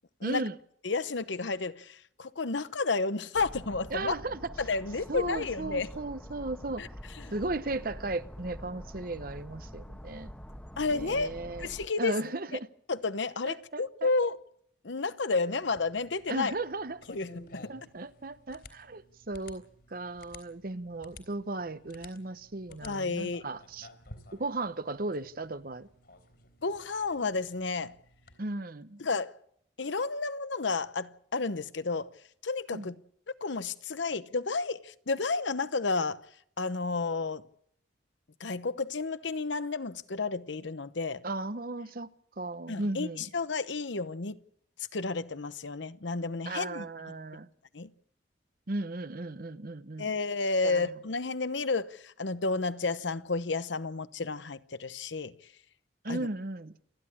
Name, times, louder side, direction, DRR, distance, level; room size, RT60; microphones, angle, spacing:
voice 1, 0.2-0.6 3.9-4.5 5.1-6.8 7.3-10.3 10.9-11.7 12.0-12.7 13.4-14.1 16.3-17.0 17.7-19.6 19.9-23.9 24.3-25.9 28.4-29.0 32.7-32.9 41.2-42.1 42.4-43.3 46.5-47.5 48.7-50.1 50.6-50.9 56.0-56.7, right 2 dB, 50° right, 0.9 m, -36 dB
voice 2, 0.8-4.1 4.6-5.9 6.8-6.9 7.2-7.3 10.8-12.2 12.9-14.4 14.8-16.5 17.1-17.7 22.8-23.4 26.6-27.9 29.0-29.3 29.8-32.1 32.4-32.9 33.4-36.2 36.6-37.4 38.4-41.2 42.7-44.4 44.9-46.9 47.7-47.9 50.0-55.3 56.1-56.3, left 3 dB, 75° left, 0.9 m, -31 dB
sound 1, 3.3-11.9, equal, 5° left, 1.2 m, -46 dB
sound 2, 15.6-28.4, left 2 dB, 60° left, 3.6 m, -54 dB
28.5 x 11.0 x 8.5 m
head